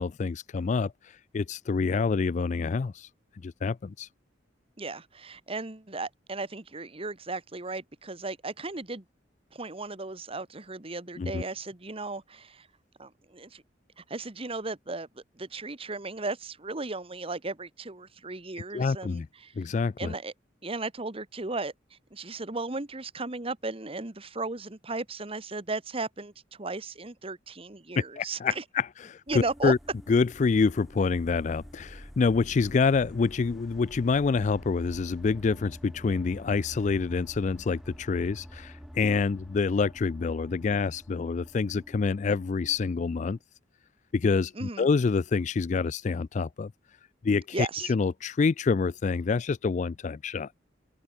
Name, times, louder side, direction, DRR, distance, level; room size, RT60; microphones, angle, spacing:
voice 1, 0.0-3.1 3.4-4.1 11.2-11.4 18.7-19.3 19.6-20.1 28.2-29.8 30.1-43.4 44.1-46.7 47.2-50.5, left 4 dB, 40° left, 0.3 m, -27 dB
voice 2, 4.8-9.0 9.5-12.7 13.0-13.6 14.0-19.5 20.0-20.3 20.6-28.6 29.3-29.7 44.5-44.9 47.5-47.9, right 3 dB, 30° right, 1.5 m, -36 dB
sound 1, 29.3-43.4, equal, ahead, 3.2 m, -48 dB
open air
head